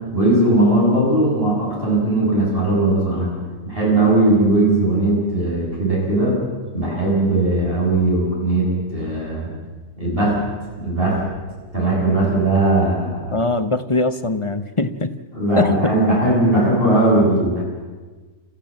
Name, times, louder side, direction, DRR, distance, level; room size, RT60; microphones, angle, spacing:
voice 1, 0.1-3.3 3.7-6.4 6.7-9.5 10.0-10.4 10.8-11.2 11.7-13.4 15.3-17.6, right 2 dB, 40° right, -5 dB, 7.6 m, -18 dB
voice 2, 13.3-15.1 15.6-15.9, left 3 dB, 25° left, 10 dB, 0.8 m, -21 dB
28.5 x 15.0 x 7.6 m, 1.4 s
omnidirectional pair, 1.5 m